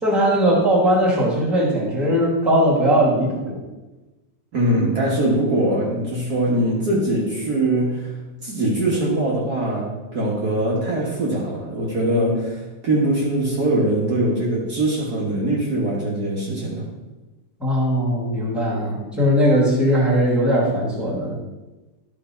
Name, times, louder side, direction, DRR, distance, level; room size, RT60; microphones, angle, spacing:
voice 1, 0.0-3.6 17.6-21.4, equal, ahead, -5 dB, 2.2 m, -19 dB
voice 2, 4.5-8.1 8.4-16.9, right 1 dB, 50° right, -5 dB, 1.9 m, -22 dB
12.0 x 5.0 x 4.5 m, 1.1 s
omnidirectional pair, 2.2 m